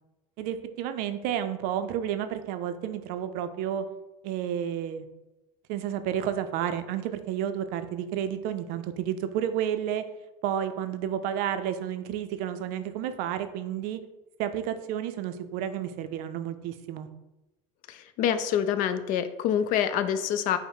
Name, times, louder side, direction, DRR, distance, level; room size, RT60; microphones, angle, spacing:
voice 1, 0.4-3.9 4.2-5.1 5.7-10.0 10.4-14.0 14.4-17.1, right 10 dB, 60° right, 10 dB, 0.5 m, -31 dB
voice 2, 17.9-20.6, left 9 dB, 55° left, 11 dB, 0.4 m, -26 dB
5.2 x 2.1 x 4.7 m, 1.0 s
supercardioid pair, 110°, 17 cm